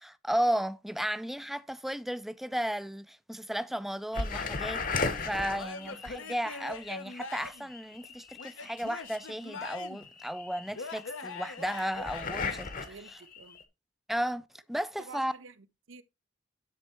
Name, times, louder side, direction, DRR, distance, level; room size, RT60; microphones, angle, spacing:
voice 1, 0.0-13.0 14.1-15.3, equal, ahead, 0.3 m, -34 dB
sound 1, 4.1-13.6, left 4 dB, 45° left, 0.9 m, -37 dB
Male speech man speaking / Yell / Laughter, 5.5-7.7 8.4-10.1 10.7-12.6, left 4 dB, 90° left, 0.9 m, -42 dB
voice 2, 12.8-13.6 15.0-16.0, right 4 dB, 85° right, 0.7 m, -50 dB
10.5 x 3.5 x 4.3 m
head